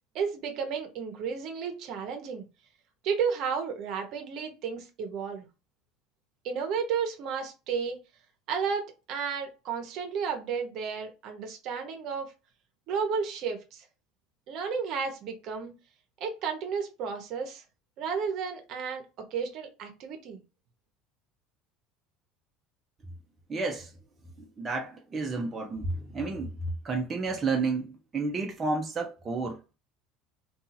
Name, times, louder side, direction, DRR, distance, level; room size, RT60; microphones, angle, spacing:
voice 1, 0.1-2.4 3.0-5.5 6.4-8.0 8.5-12.3 12.9-13.8 14.5-15.7 16.2-17.6 18.0-19.0 19.3-20.4, right 6 dB, 60° right, 0.8 m, -32 dB
voice 2, 23.5-23.9 24.6-29.6, right 3 dB, 25° right, 0.6 m, -31 dB
2.7 x 2.4 x 2.6 m
supercardioid pair, 105°, 0 cm